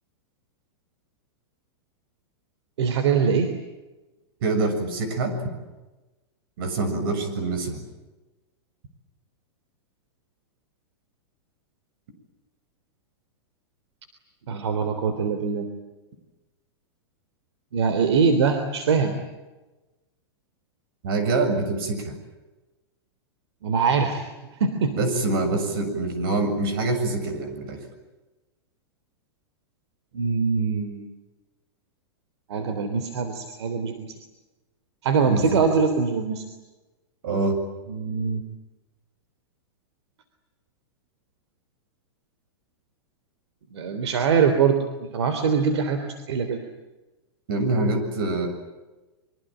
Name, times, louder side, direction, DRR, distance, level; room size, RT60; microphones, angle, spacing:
voice 1, 2.8-3.5 6.9-7.1 14.5-15.7 17.7-19.2 23.6-24.2 24.5-25.0 30.1-31.1 32.5-34.2 35.0-36.4 37.9-38.4 43.7-46.6, right 5 dB, 80° right, 8 dB, 3.3 m, -23 dB
voice 2, 4.4-5.4 6.6-7.8 21.0-22.1 24.9-27.8 35.2-35.7 37.2-37.6 47.5-48.5, right 2 dB, 55° right, 7 dB, 7.3 m, -25 dB
25.5 x 24.5 x 9.1 m, 1.1 s
supercardioid pair, 165°, 14 cm